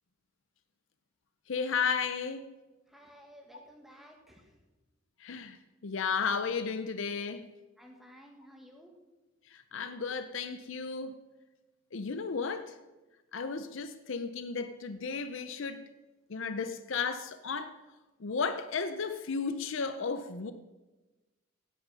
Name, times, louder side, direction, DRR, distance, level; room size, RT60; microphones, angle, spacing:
voice 1, 1.5-2.5 5.2-7.5 9.5-11.2 11.9-12.8 13.3-15.9 16.3-17.8 18.2-20.5, left 5 dB, 60° left, 0.5 m, -34 dB
voice 2, 2.9-4.6 7.1-7.2 7.8-9.0, equal, ahead, 1.4 m, -55 dB
16.5 x 6.3 x 5.3 m
head